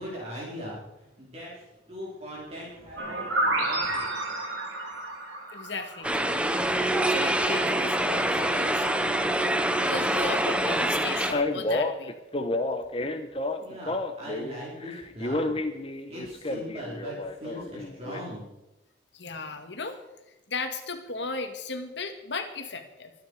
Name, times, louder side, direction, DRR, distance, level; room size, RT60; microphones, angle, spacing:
voice 1, 0.0-4.3 13.6-15.6 16.1-18.5, equal, 35° right, -5 dB, 4.8 m, -40 dB
sound 1, 3.0-6.7, right 2 dB, 80° right, 3.4 m, -30 dB
voice 2, 5.5-6.1 7.1-8.9 9.1-9.2 9.8-12.2 19.1-20.0 20.5-23.3, left 3 dB, 65° left, 6 dB, 2.1 m, -35 dB
sound 2, 6.0-11.3, right 1 dB, 5° right, 0.9 m, -25 dB
Male speech man speaking, 11.3-14.6 14.8-18.2, left 2 dB, 30° left, 1.2 m, -30 dB
24.0 x 9.5 x 5.0 m, 0.96 s
head